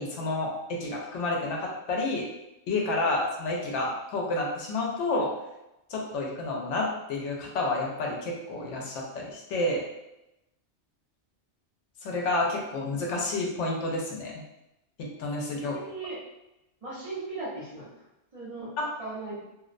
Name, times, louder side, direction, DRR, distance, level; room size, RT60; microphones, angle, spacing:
voice 1, 0.0-2.3 2.7-5.3 5.9-9.8 12.0-14.4 15.0-15.8 18.8-18.9, left 2 dB, 85° left, -1 dB, 0.9 m, -30 dB
voice 2, 15.6-16.2 16.8-17.9 18.3-18.7 19.0-19.5, right 3 dB, 35° right, -9 dB, 0.7 m, -37 dB
2.5 x 2.0 x 2.4 m, 0.91 s
omnidirectional pair, 1.2 m